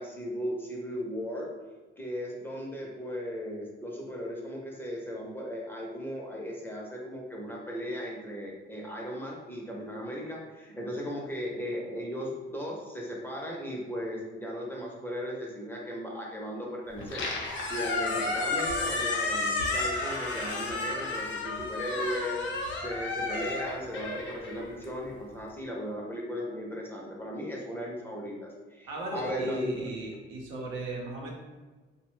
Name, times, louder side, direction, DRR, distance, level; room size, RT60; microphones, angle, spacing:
voice 1, 0.0-1.5 2.0-17.3 17.6-22.4 22.8-29.9, equal, 10° left, -2 dB, 0.6 m, -37 dB
Squeak, 17.0-25.2, left 3 dB, 70° left, 0.6 m, -32 dB
voice 2, 28.9-31.3, right 1 dB, 90° right, -2 dB, 0.7 m, -36 dB
2.8 x 2.1 x 3.1 m, 1.3 s
cardioid pair, 90°, 20 cm